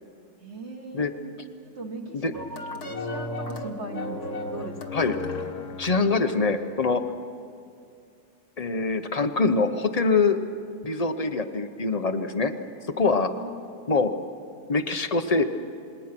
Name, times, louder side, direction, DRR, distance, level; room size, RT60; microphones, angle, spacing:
voice 1, 0.4-1.3 1.8-5.0 13.4-13.6, right 2 dB, 40° right, 2 dB, 1.9 m, -39 dB
sound 1, 2.3-6.7, left 2 dB, 65° left, 1.9 m, -34 dB
voice 2, 5.8-7.0 8.6-10.4 10.8-12.5 13.0-13.3 13.9-14.1 14.7-15.4, left 4 dB, 30° left, 8 dB, 0.8 m, -24 dB
28.0 x 20.5 x 6.0 m, 2.4 s
omnidirectional pair, 1.7 m